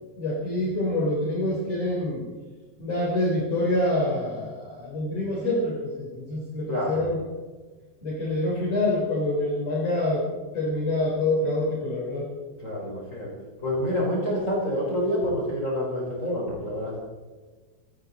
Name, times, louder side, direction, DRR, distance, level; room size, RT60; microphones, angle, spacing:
voice 1, 0.2-2.3 2.8-7.2 8.0-10.3 10.5-12.3, left 1 dB, 45° left, -6 dB, 4.8 m, -26 dB
voice 2, 6.7-7.0 12.6-13.3 13.6-17.0, equal, 20° left, -4 dB, 5.6 m, -27 dB
19.0 x 15.0 x 4.3 m, 1.3 s
omnidirectional pair, 4.4 m